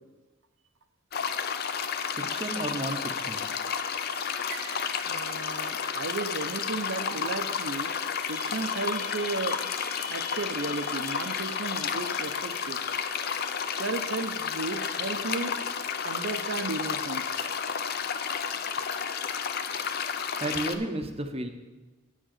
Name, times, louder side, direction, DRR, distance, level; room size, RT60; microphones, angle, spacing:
sound 1, 1.1-20.8, left 6 dB, 45° left, 0.5 m, -32 dB
voice 1, 2.1-3.5 20.4-21.5, right 1 dB, 25° right, 7 dB, 0.7 m, -33 dB
voice 2, 4.5-7.9 8.3-9.6 10.1-12.8 13.8-17.6, right 3 dB, 60° right, 10 dB, 0.7 m, -34 dB
sound 2, 8.2-15.7, left 5 dB, 25° left, 0.9 m, -45 dB
8.7 x 6.4 x 6.6 m, 1.2 s
head